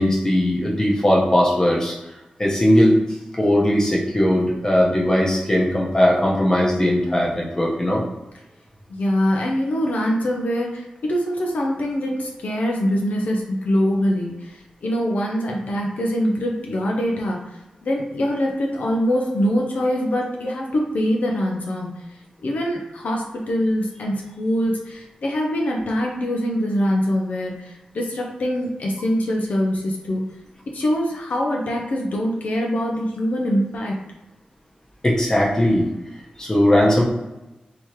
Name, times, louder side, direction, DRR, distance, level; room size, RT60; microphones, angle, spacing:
voice 1, 0.0-1.9 2.4-3.0 3.4-8.0 35.0-35.9 36.4-37.0, left 1 dB, 25° left, -3 dB, 0.9 m, -18 dB
voice 2, 8.9-22.0 22.4-30.2 30.7-33.9, equal, 70° left, -1 dB, 0.6 m, -23 dB
3.5 x 2.9 x 3.1 m, 0.99 s
wide cardioid pair, 115°, 3 cm